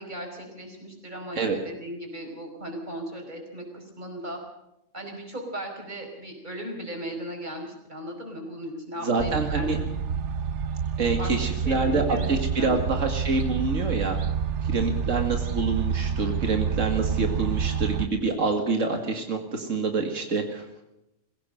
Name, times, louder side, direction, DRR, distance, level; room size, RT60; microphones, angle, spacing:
voice 1, 0.0-4.4 4.9-9.9 11.2-12.8, equal, 35° right, 2 dB, 5.2 m, -37 dB
voice 2, 9.0-9.8 11.0-14.2 14.6-20.7, right 3 dB, 90° right, 4 dB, 2.3 m, -26 dB
sound 1, 9.2-18.1, right 7 dB, 65° right, 1.3 m, -28 dB
21.5 x 16.5 x 7.8 m, 0.86 s
omnidirectional pair, 1.3 m